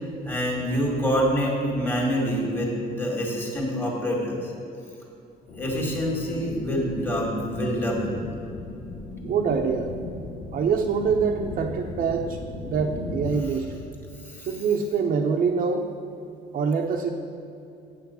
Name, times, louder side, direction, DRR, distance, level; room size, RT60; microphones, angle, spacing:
voice 1, 0.2-4.4 5.6-8.2 14.3-14.4, equal, 10° left, -2 dB, 2.0 m, -26 dB
sound 1, 5.5-13.4, left 3 dB, 55° left, 0.9 m, -37 dB
voice 2, 9.2-9.9 10.5-13.7 14.5-15.9 16.5-17.1, right 5 dB, 55° right, 0 dB, 0.7 m, -25 dB
8.5 x 6.0 x 6.9 m, 2.7 s
cardioid pair, 110°, 17 cm